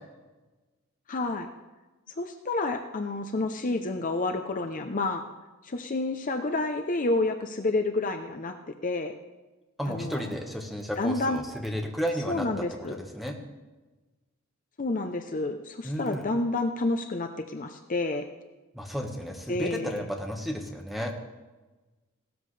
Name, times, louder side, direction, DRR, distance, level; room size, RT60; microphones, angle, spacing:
voice 1, 1.1-1.5 2.2-5.2 5.6-8.6 8.8-9.1 9.9-10.3 11.0-11.4 12.3-13.0 14.8-18.3 19.5-20.0, left 2 dB, 40° left, 5 dB, 0.7 m, -29 dB
voice 2, 9.8-12.5 13.1-13.3 15.8-16.2 18.7-21.1, equal, ahead, 1 dB, 1.4 m, -32 dB
17.0 x 13.0 x 3.3 m, 1.2 s
head